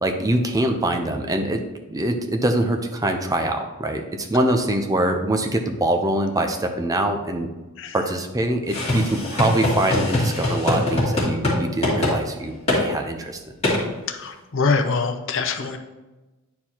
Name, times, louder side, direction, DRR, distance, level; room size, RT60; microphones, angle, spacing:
voice 1, 0.0-1.6 1.9-7.5 7.9-13.4, right 1 dB, 15° right, 5 dB, 0.6 m, -24 dB
sound 1, 8.7-11.6 11.8-12.2 12.7-12.8 13.6-13.8, left 1 dB, 30° left, 2.3 m, -22 dB
voice 2, 14.1-15.8, left 4 dB, 60° left, 6 dB, 0.7 m, -24 dB
9.5 x 4.5 x 2.9 m, 1.1 s
head